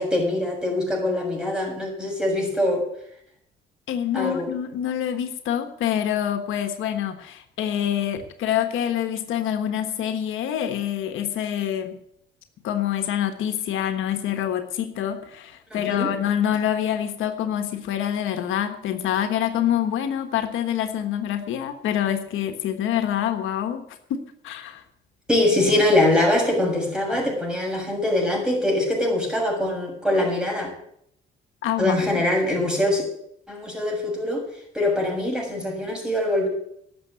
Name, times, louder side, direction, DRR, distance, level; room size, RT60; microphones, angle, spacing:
voice 1, 0.0-2.8 4.1-4.5 15.7-16.1 25.3-30.7 31.8-33.0 33.5-34.4 34.7-36.5, left 1 dB, 5° right, 0 dB, 6.9 m, -23 dB
voice 2, 3.9-12.0 12.6-23.8 24.1-24.8 31.6-31.9, left 10 dB, 85° left, 7 dB, 1.3 m, -26 dB
12.0 x 7.4 x 9.5 m, 0.71 s
cardioid pair, 90°, 20 cm